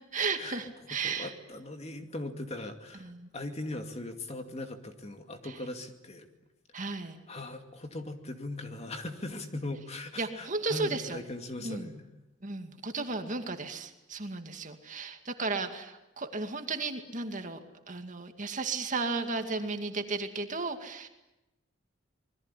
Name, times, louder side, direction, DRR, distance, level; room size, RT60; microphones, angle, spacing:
voice 1, 0.1-1.3 3.0-3.3 5.4-5.6 6.7-7.2 10.2-11.2 11.6-11.9 12.4-17.6 17.9-21.1, right 3 dB, 40° right, 6 dB, 2.3 m, -34 dB
voice 2, 1.0-6.3 7.3-12.0, left 2 dB, 35° left, 5 dB, 2.4 m, -39 dB
27.0 x 21.0 x 10.0 m, 0.97 s
head